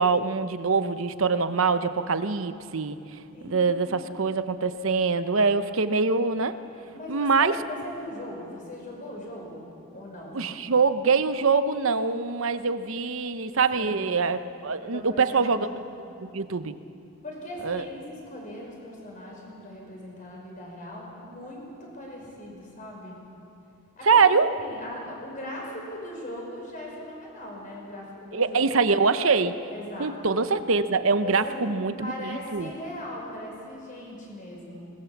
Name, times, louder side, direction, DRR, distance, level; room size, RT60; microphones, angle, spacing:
voice 1, 0.0-3.0 3.4-6.6 7.1-7.5 10.3-15.7 16.3-16.7 17.6-17.8 24.0-24.5 28.3-29.5 30.0-32.7, right 4 dB, 65° right, 11 dB, 0.8 m, -24 dB
voice 2, 6.9-9.6 9.9-10.4 13.7-14.1 14.8-15.8 17.2-23.2 24.0-24.2 24.6-28.9 29.7-30.4 31.2-31.7 32.0-34.8, left 1 dB, 35° left, -1 dB, 5.6 m, -39 dB
21.0 x 20.0 x 7.2 m, 2.7 s
head